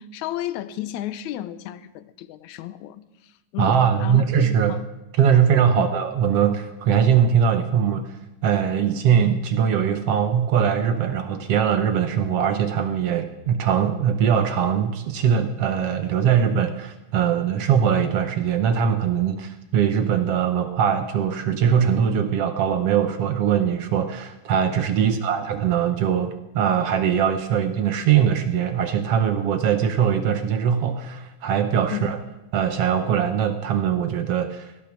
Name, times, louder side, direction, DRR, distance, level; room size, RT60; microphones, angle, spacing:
voice 1, 0.0-4.2 4.7-4.9 5.8-5.9 25.0-25.3 31.9-32.2, left 12 dB, 75° left, 14 dB, 1.9 m, -33 dB
voice 2, 3.6-4.8 5.2-8.2 8.4-32.2 32.5-34.7, right 8 dB, 65° right, 9 dB, 1.6 m, -21 dB
17.0 x 12.0 x 6.1 m, 0.95 s
omnidirectional pair, 3.6 m